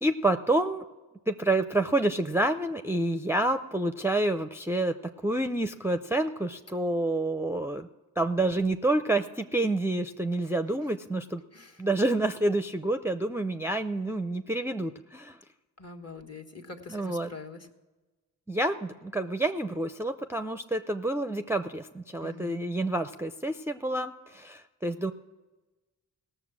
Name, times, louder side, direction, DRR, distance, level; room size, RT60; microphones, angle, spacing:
voice 1, 0.0-0.8 1.3-4.9 5.2-7.9 8.2-11.4 11.8-15.4 16.9-17.3 18.5-25.1, right 2 dB, 5° right, 7 dB, 0.5 m, -28 dB
voice 2, 15.8-17.7 22.2-22.5, left 3 dB, 40° left, 5 dB, 1.6 m, -44 dB
17.0 x 6.8 x 6.1 m, 1.2 s
cardioid pair, 55°, 40 cm